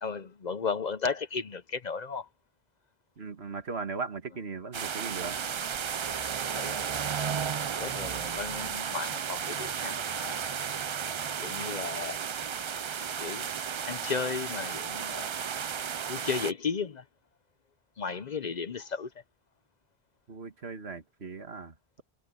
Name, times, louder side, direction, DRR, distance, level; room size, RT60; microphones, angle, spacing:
voice 1, 0.0-2.3 6.0-6.2 6.5-7.0 7.8-10.7 11.4-12.2 13.2-13.5 13.9-15.3 16.1-17.0 18.0-19.1, left 5 dB, 50° left, 0.7 m, -35 dB
voice 2, 3.2-5.4 20.3-22.0, right 4 dB, 80° right, 1.9 m, -38 dB
sound 1, 4.7-16.5, right 7 dB, 55° right, 0.3 m, -33 dB
omnidirectional pair, 1.1 m